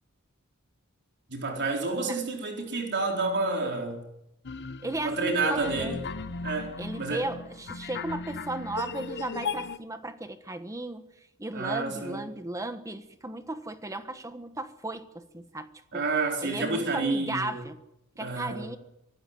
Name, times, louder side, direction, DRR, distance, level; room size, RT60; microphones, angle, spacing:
voice 1, 1.3-4.0 5.0-6.0 6.4-7.2 11.5-12.2 15.9-17.6 18.2-18.7, right 3 dB, 55° right, 1 dB, 4.1 m, -29 dB
sound 1, 4.4-9.8, left 4 dB, 55° left, 0.9 m, -37 dB
voice 2, 4.8-6.0 6.8-11.0 11.4-16.0 16.4-17.8 18.2-18.8, right 2 dB, 15° right, 9 dB, 1.2 m, -35 dB
24.5 x 12.5 x 9.7 m, 0.88 s
head